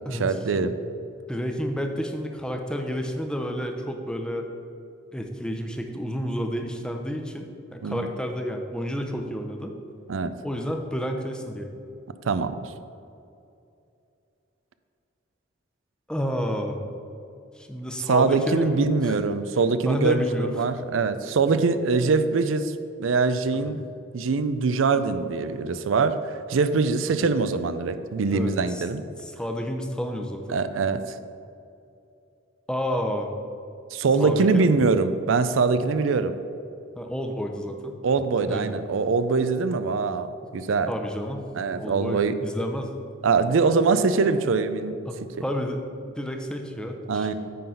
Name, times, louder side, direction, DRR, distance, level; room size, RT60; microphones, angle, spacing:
voice 1, 0.1-0.7 7.8-8.1 10.1-10.3 12.3-12.7 18.1-22.7 23.0-23.8 24.1-29.0 30.5-31.1 33.9-36.3 38.0-40.3 40.5-40.9 41.6-42.3 43.2-45.0 47.1-47.3, right 4 dB, 85° right, 11 dB, 0.5 m, -23 dB
voice 2, 1.3-4.5 5.1-9.7 10.4-11.7 16.1-16.8 17.6-18.8 19.1-19.2 19.9-20.7 28.3-28.8 29.2-30.6 32.7-33.3 34.2-34.7 37.0-38.0 38.5-38.7 40.9-41.5 41.7-42.9 45.1-45.8 46.2-47.3, equal, 5° left, 3 dB, 0.6 m, -30 dB
9.3 x 3.9 x 5.6 m, 2.6 s
head